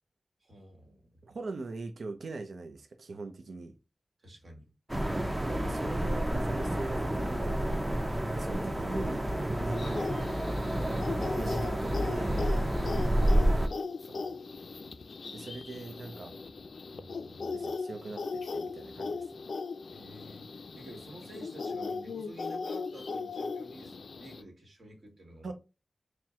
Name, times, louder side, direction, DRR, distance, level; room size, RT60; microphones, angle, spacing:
voice 1, 0.4-1.2 4.2-4.7 16.9-17.7 19.9-20.4 20.8-25.5, right 1 dB, 60° right, 1.5 m, -51 dB
voice 2, 1.2-3.8 5.4-8.0 8.3-12.4 13.1-13.4 14.0-14.4 15.3-16.4 17.5-19.4 25.4-25.5, right 3 dB, 85° right, 0.6 m, -42 dB
sound 1, 4.9-13.7, right 1 dB, 15° right, 0.5 m, -29 dB
sound 2, 9.7-24.4, left 4 dB, 75° left, 0.4 m, -38 dB
4.4 x 2.2 x 3.6 m
wide cardioid pair, 115°, 0 cm